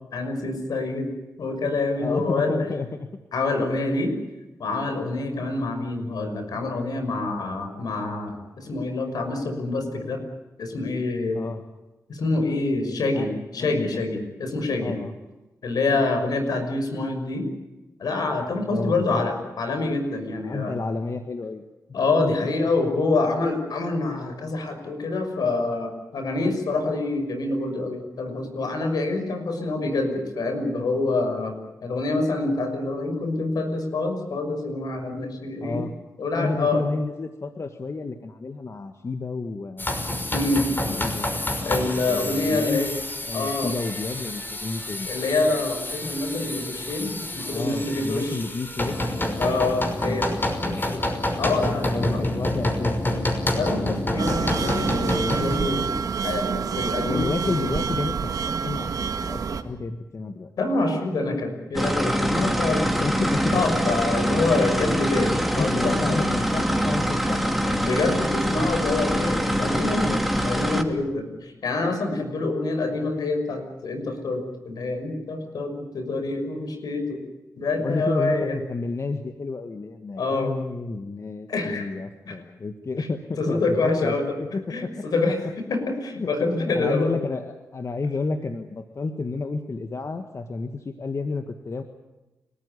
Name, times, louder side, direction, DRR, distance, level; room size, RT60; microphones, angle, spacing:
voice 1, 0.1-1.1 1.4-2.6 3.3-4.1 4.6-10.2 10.6-11.4 12.1-15.0 15.6-17.5 18.0-20.7 21.9-31.6 31.8-35.9 36.2-36.8 40.3-40.6 41.6-42.9 43.3-43.7 45.1-48.4 49.4-50.3 51.4-52.3 53.6-57.7 60.6-63.1 63.5-66.3 67.8-77.2 77.6-78.6 80.2-80.5 81.5-81.9 82.2-82.4 83.0-83.1 83.4-84.4 84.7-87.1, left 3 dB, 80° left, 6 dB, 6.0 m, -26 dB
voice 2, 2.0-3.1 11.3-11.6 12.8-13.3 13.6-14.0 14.8-15.1 18.7-19.2 20.4-21.6 22.2-22.3 35.6-36.0 36.3-40.0 40.9-41.3 42.0-42.8 43.2-45.1 47.5-49.6 50.0-50.9 51.8-53.3 57.0-60.5 62.7-63.6 65.6-68.2 77.8-84.1 84.5-84.9 86.2-86.3 86.6-91.8, left 3 dB, 50° left, 7 dB, 1.8 m, -31 dB
sound 1, 39.8-55.6, left 1 dB, 30° left, 5.9 m, -28 dB
sound 2, 54.2-59.6, right 6 dB, 70° right, 2.1 m, -27 dB
sound 3, 61.7-70.8, equal, ahead, 3.2 m, -24 dB
30.0 x 14.5 x 10.0 m, 1.1 s
cardioid pair, 55°, 7 cm